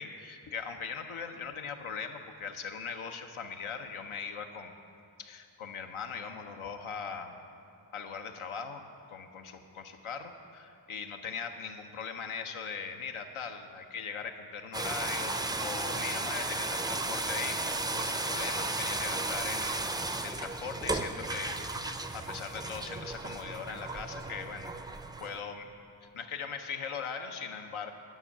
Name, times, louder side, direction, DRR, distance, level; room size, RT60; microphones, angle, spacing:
voice 1, 0.0-4.7 5.2-7.5 7.9-24.8 25.2-25.7 26.1-27.9, left 6 dB, 90° left, 6 dB, 0.8 m, -40 dB
sound 1, 14.7-25.4, right 2 dB, 10° right, 0.3 m, -34 dB
9.5 x 5.5 x 7.1 m, 2.6 s
wide cardioid pair, 70°, 48 cm